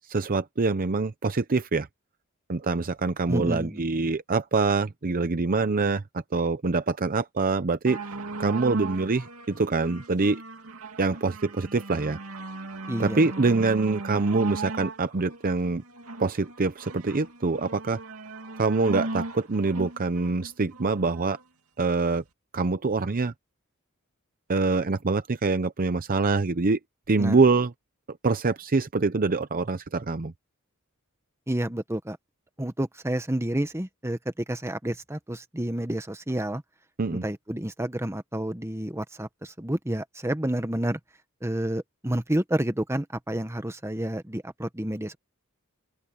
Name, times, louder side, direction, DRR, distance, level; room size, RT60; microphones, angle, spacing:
voice 1, 0.1-1.9 2.5-8.0 8.4-10.4 11.0-12.2 13.0-15.8 16.2-18.0 18.6-21.4 21.8-22.2 22.5-23.3 24.5-26.8 27.1-27.7 28.1-30.3 37.0-37.3, right 3 dB, 40° right, 0.7 m, -25 dB
voice 2, 3.3-3.8 12.9-13.2 13.5-13.6 27.2-27.4 31.5-32.2 32.6-36.6 37.1-41.0 41.4-45.2, right 1 dB, 10° right, 1.4 m, -29 dB
sound 1, 7.9-21.4 22.2-22.3, right 3 dB, 80° right, 2.5 m, -38 dB
open air
head